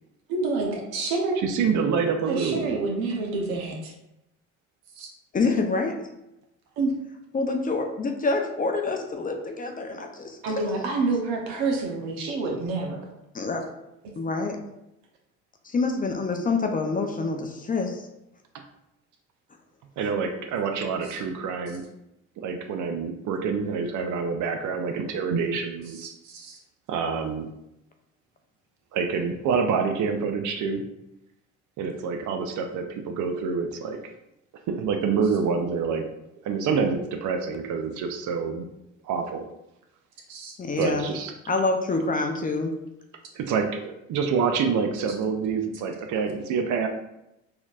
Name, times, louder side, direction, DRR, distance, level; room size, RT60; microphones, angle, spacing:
voice 1, 0.3-1.4 2.3-3.9 5.0-5.1 6.8-6.9 10.4-13.0 26.2-26.6 40.3-40.5, right 3 dB, 75° right, 1 dB, 0.9 m, -28 dB
voice 2, 1.4-2.8 20.0-21.8 22.4-26.1 26.9-27.5 28.9-30.8 31.8-34.0 34.7-36.0 36.4-38.6 39.0-39.5 40.8-41.3 43.3-46.9, right 5 dB, 55° right, 5 dB, 0.5 m, -27 dB
voice 3, 5.3-6.0 7.3-10.4 13.3-13.6 14.2-14.6 15.6-18.0 40.6-41.1 41.5-42.8, left 3 dB, 25° left, 4 dB, 0.5 m, -26 dB
4.3 x 2.7 x 2.4 m, 0.87 s
hypercardioid pair, 65°, 36 cm